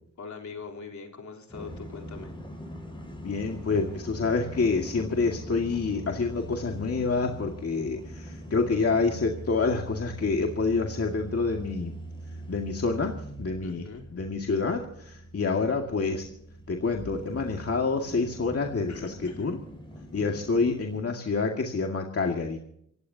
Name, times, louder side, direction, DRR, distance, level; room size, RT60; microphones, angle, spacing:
voice 1, 0.2-2.3 13.6-14.0 18.9-19.6, left 5 dB, 70° left, 1 dB, 3.6 m, -42 dB
sound 1, 1.5-21.0, right 1 dB, 15° left, 7.3 m, -42 dB
voice 2, 3.2-11.9 12.5-13.9 14.1-16.2 16.7-19.6 20.1-22.6, left 4 dB, 50° left, 2 dB, 2.1 m, -27 dB
26.5 x 16.5 x 2.8 m, 0.70 s
cardioid pair, 85°, 30 cm